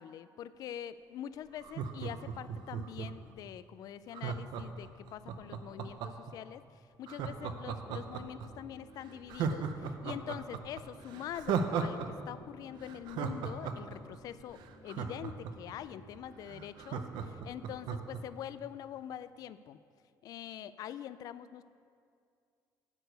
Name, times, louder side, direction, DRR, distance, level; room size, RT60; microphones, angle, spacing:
voice 1, 0.0-6.6 7.0-19.8 20.2-21.6, left 10 dB, 55° left, 14 dB, 0.3 m, -44 dB
Laughter, 1.6-3.3 4.1-6.3 7.1-8.5 8.8-8.9 9.3-12.1 12.3-12.4 12.8-15.7 16.2-16.3 16.5-18.2 18.6-18.7, right 6 dB, 85° right, 0.7 m, -36 dB
sound 1, 7.6-18.3, right 1 dB, 85° left, 1.8 m, -57 dB
10.5 x 4.7 x 8.0 m, 2.3 s
cardioid pair, 160°, 7 cm